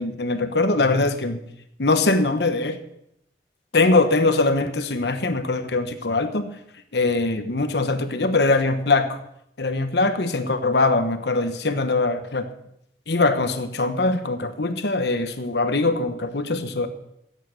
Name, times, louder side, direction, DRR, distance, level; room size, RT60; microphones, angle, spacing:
voice 1, 0.0-1.4 1.8-2.8 3.7-6.5 6.9-9.2 9.6-12.5 13.1-16.9, left 3 dB, 70° left, 8 dB, 1.2 m, -22 dB
14.0 x 8.5 x 6.6 m, 0.77 s
head